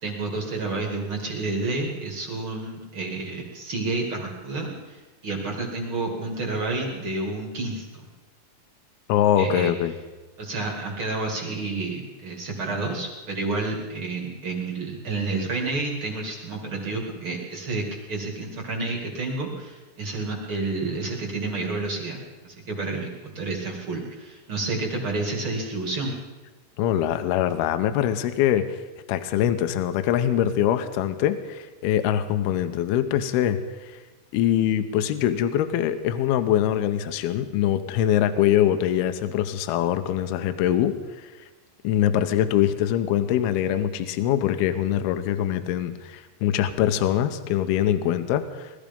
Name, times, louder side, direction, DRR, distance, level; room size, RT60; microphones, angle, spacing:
voice 1, 0.0-8.1 9.4-9.7 10.4-26.1, right 3 dB, 40° right, 0 dB, 2.3 m, -30 dB
voice 2, 9.1-9.9 26.8-28.8 29.1-34.0 34.3-41.3 41.8-48.7, left 11 dB, 80° left, 10 dB, 2.6 m, -23 dB
20.0 x 13.5 x 5.3 m, 1.2 s
omnidirectional pair, 4.8 m